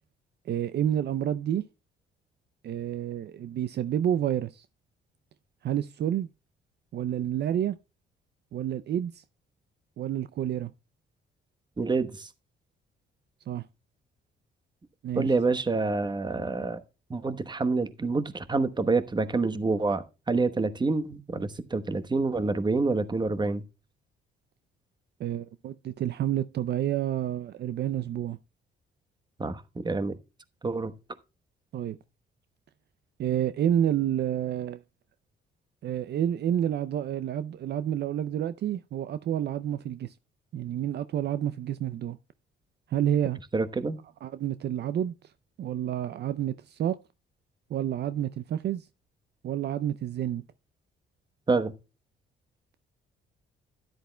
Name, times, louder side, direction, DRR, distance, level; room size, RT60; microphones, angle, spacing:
voice 1, 0.5-1.6 2.6-4.7 5.6-6.3 6.9-7.8 8.5-9.2 10.0-10.7 13.5-13.6 15.0-15.3 25.2-28.4 31.7-32.0 33.2-34.8 35.8-40.1 40.5-42.2 42.9-43.4 44.2-45.3 45.6-47.0 47.7-48.9 49.4-50.4, right 10 dB, 55° right, 0.5 m, -29 dB
voice 2, 11.8-12.3 15.2-16.8 17.1-23.6 29.4-30.2 30.6-30.9 43.5-44.0 51.5-51.7, right 3 dB, 20° right, 1.0 m, -27 dB
12.5 x 10.5 x 2.2 m
cardioid pair, 90°, 20 cm